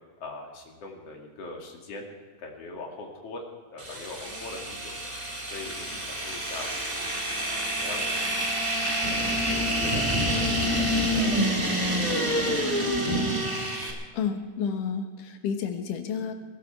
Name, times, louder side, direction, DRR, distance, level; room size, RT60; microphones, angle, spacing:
voice 1, 0.2-2.1 2.4-3.4 3.7-4.9 5.5-7.0 7.4-8.3 9.4-12.5, left 3 dB, 50° left, 1 dB, 3.1 m, -41 dB
sound 1, 3.8-13.9, equal, 15° right, 1.7 m, -27 dB
voice 2, 14.1-16.3, left 6 dB, 80° left, 6 dB, 2.8 m, -30 dB
20.5 x 12.0 x 4.6 m, 1.5 s
omnidirectional pair, 3.6 m